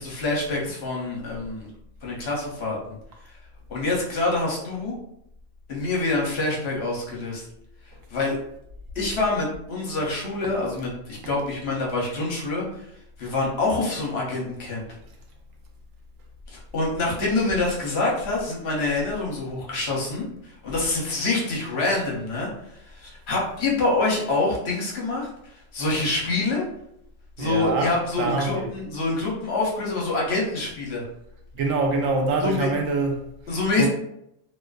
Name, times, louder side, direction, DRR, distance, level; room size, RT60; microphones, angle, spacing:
voice 1, 0.0-1.7 2.0-2.8 3.7-4.9 5.7-7.4 8.1-8.4 9.0-12.8 13.2-14.8 16.5-22.5 22.8-26.7 27.4-31.0 32.4-32.7 33.5-33.9, left 2 dB, 60° left, 0.9 m, -26 dB
voice 2, 27.4-28.7 31.5-33.3 33.8-33.9, right 3 dB, 85° right, 1.0 m, -25 dB
2.5 x 2.4 x 2.2 m
omnidirectional pair, 1.3 m